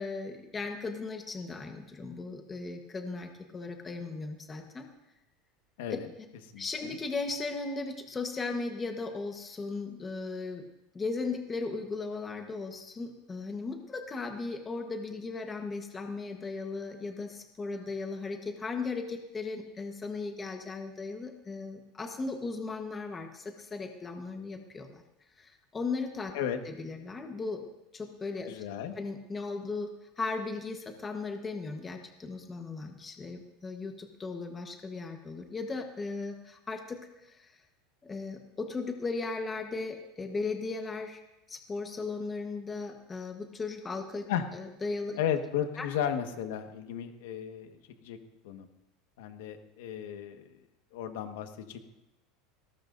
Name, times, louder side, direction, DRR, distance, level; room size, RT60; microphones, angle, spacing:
voice 1, 0.0-4.9 6.6-10.6 10.9-25.0 25.4-26.3 26.6-27.7 27.9-28.7 29.0-37.5 38.0-41.2 41.5-44.2 44.5-45.2 45.8-45.9, left 3 dB, 15° left, 4 dB, 1.2 m, -37 dB
voice 2, 6.5-6.9 26.3-26.6 28.5-29.0 44.3-44.4 45.2-47.8 48.0-48.2 48.4-48.7 49.2-50.5 50.9-51.9, left 9 dB, 75° left, 6 dB, 1.5 m, -34 dB
20.5 x 18.0 x 2.6 m, 0.93 s
supercardioid pair, 170°, 0 cm